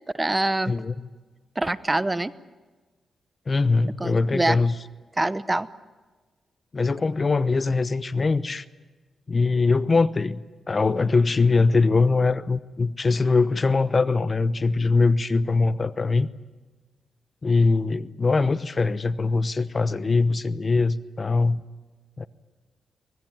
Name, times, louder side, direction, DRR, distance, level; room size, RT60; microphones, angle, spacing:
voice 1, 0.1-0.7 1.6-2.3 4.0-4.6 5.2-5.7, right 2 dB, 20° right, 15 dB, 0.9 m, -24 dB
voice 2, 0.7-1.1 3.5-4.7 6.7-8.6 9.3-16.3 17.4-21.6 22.2-22.3, left 3 dB, 40° left, 15 dB, 0.9 m, -22 dB
24.5 x 19.5 x 9.0 m, 1.3 s
cardioid pair, 70°, 0 cm